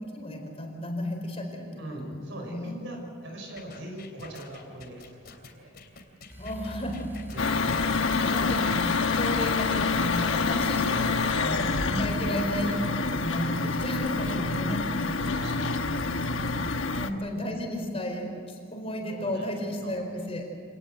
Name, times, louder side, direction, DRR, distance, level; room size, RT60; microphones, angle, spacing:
voice 1, 0.0-1.8 2.1-2.2 2.5-2.7 6.4-7.2 8.2-14.8 17.0-20.6, left 1 dB, 30° left, 2 dB, 4.3 m, -33 dB
voice 2, 1.8-5.8 7.3-7.6 11.4-11.7 12.4-12.8 14.2-14.5 14.8-16.4 19.1-20.0, right 1 dB, 65° right, 1 dB, 5.9 m, -42 dB
sound 1, 3.6-9.3, left 4 dB, 50° left, 3.0 m, -48 dB
sound 2, 6.3-12.3, equal, 10° right, 4.4 m, -42 dB
sound 3, 7.4-17.1, left 4 dB, 70° left, 1.3 m, -27 dB
26.0 x 19.0 x 8.0 m, 2.4 s
head